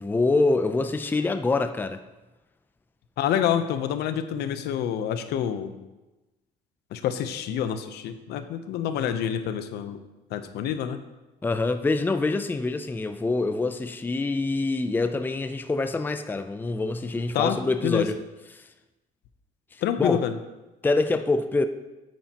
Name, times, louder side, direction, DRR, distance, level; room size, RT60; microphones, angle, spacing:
voice 1, 0.0-2.0 11.4-18.2 18.5-18.6 20.0-20.2 20.8-21.7, left 3 dB, 10° left, 0.5 m, -25 dB
voice 2, 3.2-5.8 6.9-10.0 10.3-11.0 17.3-18.1 19.8-20.4, left 9 dB, 80° left, 0.7 m, -27 dB
9.2 x 8.6 x 2.9 m
cardioid pair, 110°, 17 cm